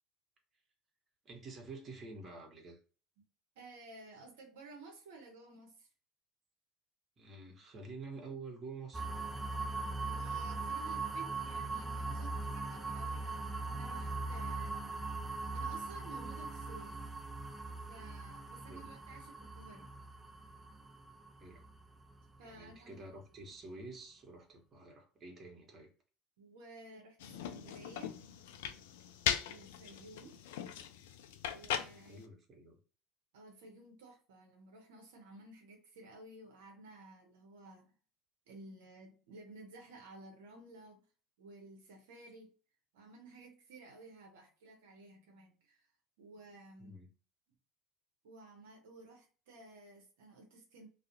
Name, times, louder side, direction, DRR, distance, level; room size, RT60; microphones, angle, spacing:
voice 1, 1.2-2.8 7.2-9.1 18.7-18.9 21.4-21.7 22.4-25.9 31.9-32.8 46.8-47.1, right 3 dB, 40° right, 0.9 m, -49 dB
voice 2, 3.6-5.9 9.8-14.9 15.5-17.0 17.9-19.9 22.4-23.0 26.4-28.2 29.5-30.4 31.5-32.2 33.3-37.9 38.5-41.1 41.4-42.6 42.9-45.9 46.2-47.0 48.2-50.9, right 2 dB, 75° right, 0.6 m, -55 dB
sound 1, 8.9-22.7, right 3 dB, 10° right, 0.4 m, -40 dB
sound 2, 27.2-32.2, left 9 dB, 75° left, 0.3 m, -39 dB
2.3 x 2.0 x 2.8 m
hypercardioid pair, 65°, 0 cm